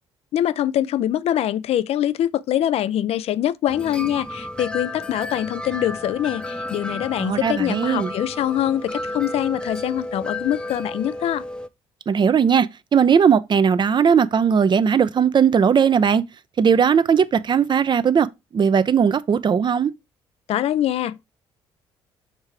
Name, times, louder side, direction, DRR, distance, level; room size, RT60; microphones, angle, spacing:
voice 1, 0.3-11.4 20.5-21.2, left 11 dB, 55° left, 0.4 m, -24 dB
sound 1, 3.7-11.7, left 1 dB, 5° left, 0.7 m, -32 dB
voice 2, 7.2-8.1 12.1-16.2 16.6-18.3 18.5-19.9, right 7 dB, 40° right, 0.6 m, -18 dB
6.6 x 3.2 x 4.8 m
hypercardioid pair, 50°, 12 cm